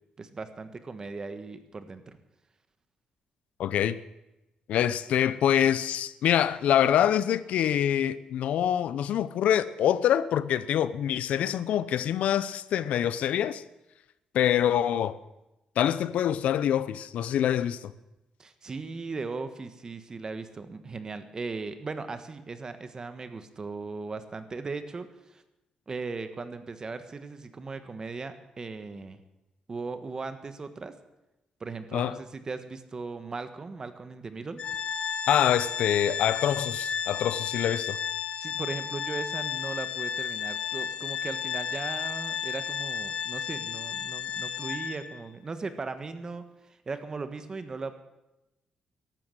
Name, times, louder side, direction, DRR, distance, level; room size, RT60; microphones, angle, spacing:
voice 1, 0.2-2.2 18.4-25.4 25.9-29.2 29.7-31.0 31.6-34.8 38.4-46.5 46.9-48.0, right 4 dB, 30° right, 1.3 m, -38 dB
voice 2, 3.6-4.0 4.7-13.6 14.3-15.2 15.8-17.9 31.9-32.2 35.3-38.0, left 10 dB, 80° left, 0.7 m, -25 dB
Organ, 34.6-45.2, left 7 dB, 45° left, 0.9 m, -33 dB
13.5 x 12.0 x 7.7 m
cardioid pair, 110°, 2 cm